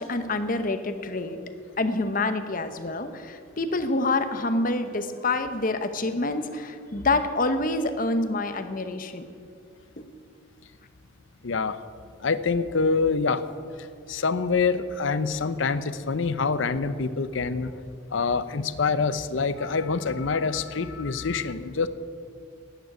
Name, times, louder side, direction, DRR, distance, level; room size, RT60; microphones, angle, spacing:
voice 1, 0.0-1.4 1.8-9.2 10.0-10.1, left 2 dB, 45° left, 9 dB, 0.9 m, -27 dB
voice 2, 11.4-11.8 12.2-13.4 14.1-17.7 18.1-21.9, left 4 dB, 75° left, 14 dB, 0.7 m, -26 dB
12.0 x 9.1 x 9.1 m, 2.3 s
head